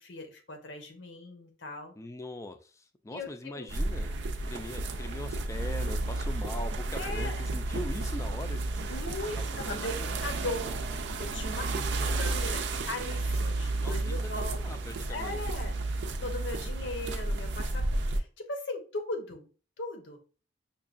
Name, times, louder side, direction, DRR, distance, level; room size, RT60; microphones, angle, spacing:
voice 1, 0.0-2.0 3.1-3.6 6.9-7.4 8.9-10.7 11.2-11.9 12.1-14.7 15.1-15.8 16.2-19.5 19.8-20.2, left 2 dB, 85° left, 4 dB, 0.9 m, -38 dB
voice 2, 2.0-4.1 4.4-8.6 9.4-10.1 11.6-12.4 13.8-15.5, left 1 dB, 15° left, 7 dB, 0.4 m, -42 dB
sound 1, 3.7-18.2, right 2 dB, 75° right, 0.4 m, -32 dB
5.5 x 2.3 x 2.5 m, 0.36 s
head